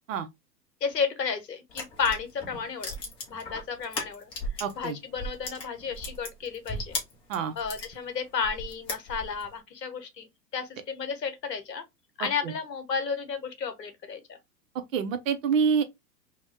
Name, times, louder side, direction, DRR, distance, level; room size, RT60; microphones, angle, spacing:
voice 1, 0.8-3.0 3.3-4.3 4.7-7.0 7.6-11.8 12.2-14.4, left 6 dB, 85° left, 0.9 m, -32 dB
sound 1, 1.7-4.8 5.1-7.9 8.4-9.5, left 1 dB, 10° left, 0.4 m, -36 dB
voice 2, 4.6-5.0 7.3-7.5 12.2-12.5 14.9-15.8, right 6 dB, 55° right, 0.7 m, -27 dB
2.7 x 2.1 x 3.2 m
figure-of-eight pair, 105°, 48 cm